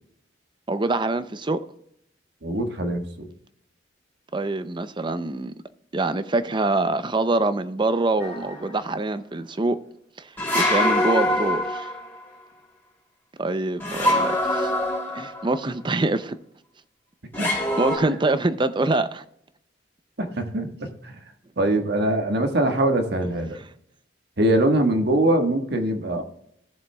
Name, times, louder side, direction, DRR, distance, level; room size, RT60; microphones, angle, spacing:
voice 1, 0.7-1.6 4.3-5.5 5.9-9.8 10.2-10.3 10.5-11.9 13.4-14.7 15.1-16.4 17.4-19.2, right 2 dB, 25° right, 0.5 m, -25 dB
voice 2, 2.4-3.3 17.4-17.5 20.2-21.1 21.6-23.6 24.4-26.2, right 1 dB, 60° right, 1.4 m, -23 dB
sound 1, 8.2-8.7 10.4-12.1 13.8-15.5 17.3-18.0, left 1 dB, 10° left, 2.9 m, -24 dB
16.5 x 7.2 x 2.3 m
head